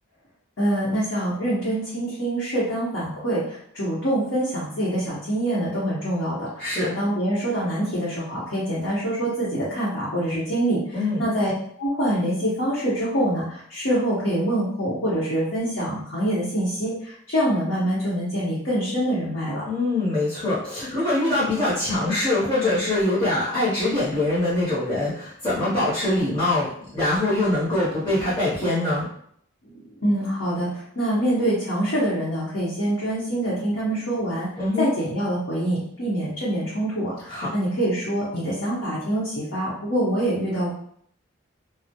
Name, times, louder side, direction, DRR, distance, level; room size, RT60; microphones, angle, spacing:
voice 1, 0.6-11.5 11.8-19.6 29.6-34.5 34.8-40.7, right 1 dB, 70° left, -9 dB, 0.8 m, -25 dB
voice 2, 6.6-6.9 10.9-11.3 19.6-29.1 34.6-34.9 37.3-37.5, left 2 dB, 25° left, -11 dB, 0.7 m, -23 dB
2.2 x 2.0 x 2.7 m, 0.64 s
head